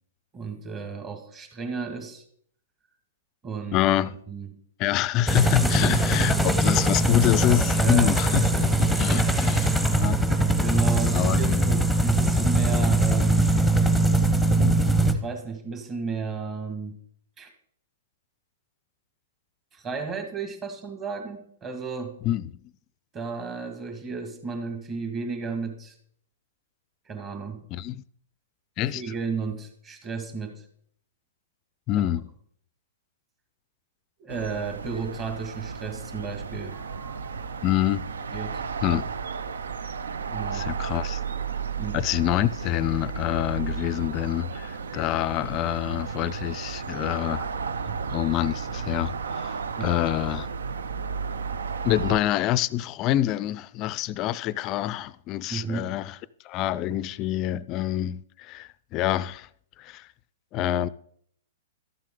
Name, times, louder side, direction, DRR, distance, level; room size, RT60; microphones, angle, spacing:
voice 1, 0.3-2.2 3.4-4.5 5.6-6.0 7.8-8.7 9.0-9.8 10.3-13.6 15.1-17.0 17.4-17.5 19.7-22.2 23.1-26.0 27.1-27.7 28.8-30.6 32.0-32.1 34.2-37.5 38.3-39.1 40.3-40.7 41.8-42.0 47.8-48.0 49.8-49.9 55.5-56.0 56.9-57.0, right 4 dB, 25° right, 1.8 m, -34 dB
voice 2, 3.7-4.1 4.8-8.7 9.0-10.2 11.1-11.7 14.6-14.8 22.2-22.5 27.7-28.0 28.8-29.0 31.9-32.3 37.6-38.1 38.8-39.0 40.5-41.2 41.9-47.5 48.1-50.5 51.8-56.2 56.4-59.5 59.8-60.1 60.5-60.9, left 13 dB, 35° left, 0.4 m, -26 dB
sound 1, 5.3-15.1, right 1 dB, 5° right, 0.9 m, -21 dB
sound 2, 34.3-52.2, right 5 dB, 85° right, 0.6 m, -33 dB
13.0 x 7.5 x 3.7 m
hypercardioid pair, 135°, 0 cm